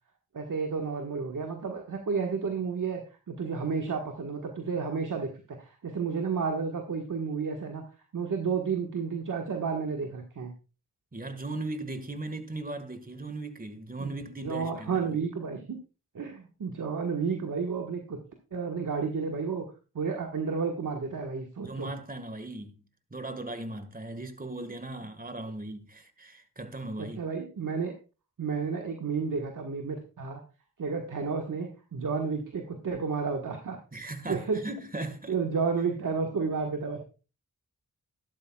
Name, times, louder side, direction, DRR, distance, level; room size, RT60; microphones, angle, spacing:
voice 1, 0.3-7.8 8.1-10.5 14.0-14.1 14.4-15.6 16.1-18.2 18.5-19.7 19.9-21.9 27.0-27.9 28.4-30.4 30.8-33.8 34.3-34.6 35.3-37.0, right 5 dB, 65° right, 1.6 m, -31 dB
voice 2, 11.1-15.2 21.6-22.7 23.1-27.3 33.9-35.3, right 2 dB, 25° right, 1.7 m, -38 dB
12.5 x 11.5 x 2.4 m
cardioid pair, 55°, 33 cm